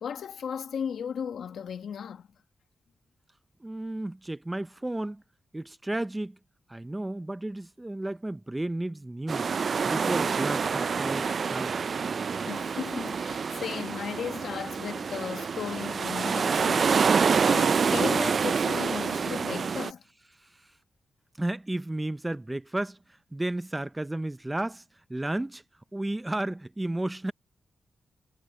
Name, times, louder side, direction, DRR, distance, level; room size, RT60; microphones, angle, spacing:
voice 1, 0.0-2.3 12.4-20.0, left 7 dB, 80° left, 1.6 m, -36 dB
voice 2, 3.6-5.2 5.5-6.4 6.7-9.5 9.9-11.7 21.4-23.0 23.3-24.8 25.1-25.6 25.9-27.3, right 1 dB, 15° right, 0.6 m, -32 dB
sound 1, 9.3-19.9, right 5 dB, 60° right, 0.3 m, -27 dB
cardioid pair, 60°, 0 cm